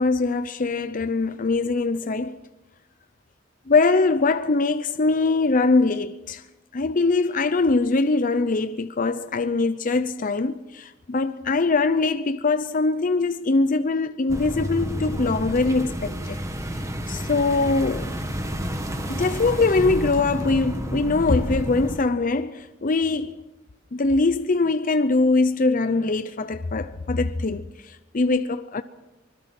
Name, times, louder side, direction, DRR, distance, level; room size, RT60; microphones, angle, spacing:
voice 1, 0.0-2.4 3.7-6.4 6.7-16.4 17.1-18.2 19.1-23.4 23.9-28.8, left 3 dB, 40° left, 0.7 m, -22 dB
sound 1, 14.3-22.0, equal, 15° right, 1.8 m, -30 dB
24.5 x 21.0 x 6.0 m
head